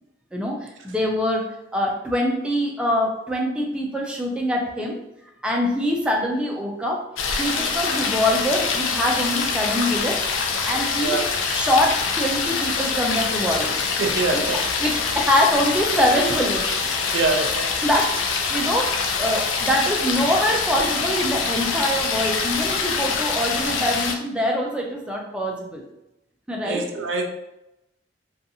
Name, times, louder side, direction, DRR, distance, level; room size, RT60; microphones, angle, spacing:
voice 1, 0.3-5.0 5.4-7.0 7.4-10.2 10.7-11.2 11.5-13.8 14.3-14.5 14.8-16.7 17.8-18.2 18.5-25.8 26.5-26.9, equal, 5° right, 0 dB, 0.3 m, -24 dB
sound 1, 7.2-24.2, left 5 dB, 90° left, 0.4 m, -25 dB
voice 2, 14.0-14.6 17.1-17.7 26.6-27.3, right 3 dB, 80° right, 3 dB, 0.5 m, -24 dB
2.6 x 2.4 x 2.7 m, 0.87 s
head